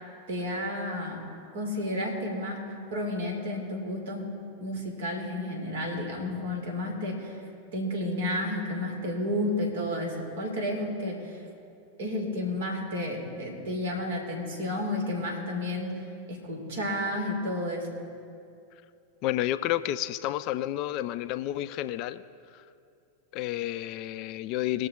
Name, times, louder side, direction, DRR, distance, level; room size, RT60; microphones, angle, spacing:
voice 1, 0.3-1.2 1.5-2.6 2.9-4.3 4.6-7.4 7.7-11.4 12.0-15.9 16.3-17.8, left 1 dB, 60° right, 0 dB, 3.2 m, -31 dB
voice 2, 19.2-22.2 23.3-24.9, left 14 dB, 40° left, 13 dB, 0.4 m, -30 dB
21.0 x 7.1 x 3.9 m, 2.5 s
figure-of-eight pair, 90°, 0 cm